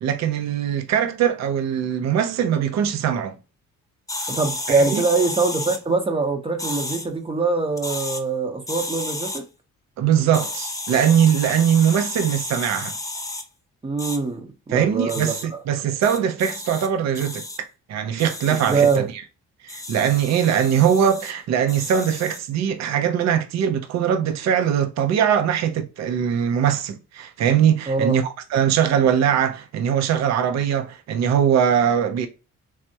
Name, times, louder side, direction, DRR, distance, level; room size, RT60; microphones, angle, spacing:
voice 1, 0.0-3.3 4.9-5.0 10.0-13.0 14.7-19.1 19.6-32.3, right 8 dB, 65° right, 0.5 m, -21 dB
sound 1, 4.1-5.8 6.6-7.1 7.7-8.2 8.7-9.4 10.3-13.4 14.0-14.2 15.1-15.4 16.0-16.9 17.1-17.6 18.2-19.0 19.7-21.3 21.7-22.4, left 2 dB, 10° left, 0.6 m, -32 dB
voice 2, 4.3-9.4 13.8-15.3 18.5-19.1 27.9-28.2, right 4 dB, 20° right, 0.8 m, -23 dB
3.3 x 2.1 x 2.7 m
cardioid pair, 90°, 30 cm